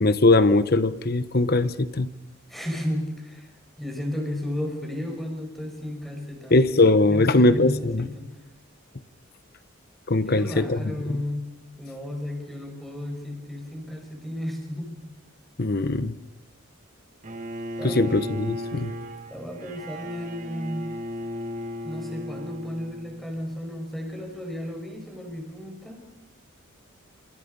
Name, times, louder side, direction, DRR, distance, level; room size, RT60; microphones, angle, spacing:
voice 1, 0.0-2.1 6.5-8.1 10.1-10.9 15.6-16.1 17.8-18.9, left 2 dB, 45° left, 13 dB, 0.9 m, -20 dB
voice 2, 2.5-3.5 3.8-8.3 10.2-11.5 11.8-15.0 17.8-18.1 19.3-20.9 21.8-26.0, left 1 dB, ahead, 2 dB, 5.5 m, -33 dB
Bowed string instrument, 17.2-23.4, equal, 35° right, 1.9 m, -35 dB
27.0 x 27.0 x 5.4 m, 0.95 s
head